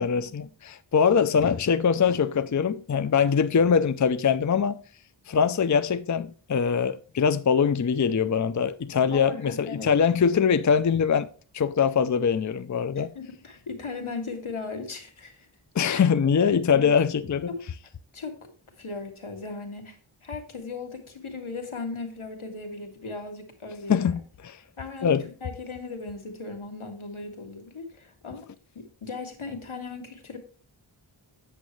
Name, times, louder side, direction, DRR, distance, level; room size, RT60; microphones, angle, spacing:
voice 1, 0.0-4.8 5.3-11.3 11.5-13.1 15.7-17.5 23.9-24.6 25.0-25.3, left 6 dB, 40° left, 0.5 m, -23 dB
voice 2, 9.1-9.9 13.0-15.5 15.8-16.0 16.7-16.9 17.5-17.6 18.1-18.4 18.8-24.1 24.8-28.5 28.8-30.4, left 4 dB, 85° left, 1.9 m, -37 dB
8.6 x 7.1 x 3.1 m
wide cardioid pair, 65°, 48 cm